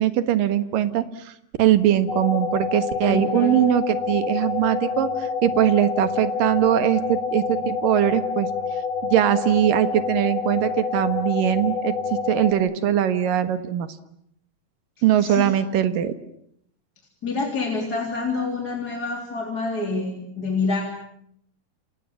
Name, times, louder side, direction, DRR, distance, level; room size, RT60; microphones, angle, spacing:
voice 1, 0.0-1.3 1.6-8.5 9.0-11.9 12.3-13.9 15.0-16.1, right 11 dB, 80° right, 11 dB, 3.1 m, -21 dB
sound 1, 2.1-12.5, left 5 dB, 60° left, 4.0 m, -27 dB
voice 2, 3.1-3.6 15.2-15.5 17.2-20.8, left 3 dB, 30° left, 1 dB, 3.8 m, -27 dB
29.0 x 27.5 x 7.3 m, 0.72 s
omnidirectional pair, 3.9 m